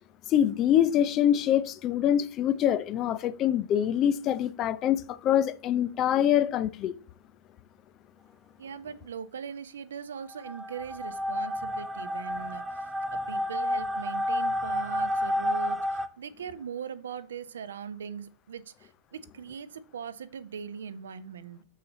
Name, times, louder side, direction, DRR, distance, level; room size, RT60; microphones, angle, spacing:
voice 1, 0.3-6.9, left 10 dB, 35° left, 0.5 m, -25 dB
voice 2, 8.6-21.6, right 7 dB, 65° right, 0.7 m, -40 dB
sound 1, 10.3-16.1, left 1 dB, 5° right, 0.8 m, -30 dB
6.9 x 6.4 x 3.9 m
figure-of-eight pair, 90°, 0 cm